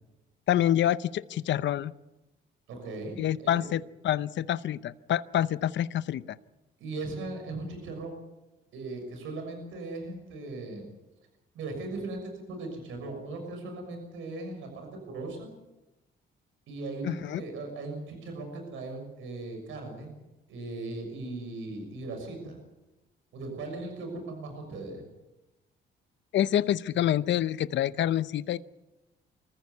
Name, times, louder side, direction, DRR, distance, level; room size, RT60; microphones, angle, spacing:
voice 1, 0.5-1.9 3.2-6.2 17.0-17.4 26.3-28.6, left 11 dB, 65° left, 16 dB, 0.7 m, -27 dB
voice 2, 2.7-3.7 6.8-8.2 8.7-10.9 11.5-12.2 12.5-15.5 16.7-20.1 20.5-22.6 23.3-25.0, right 2 dB, 85° right, 4 dB, 6.6 m, -38 dB
24.5 x 15.0 x 9.5 m, 0.99 s
cardioid pair, 90°, 20 cm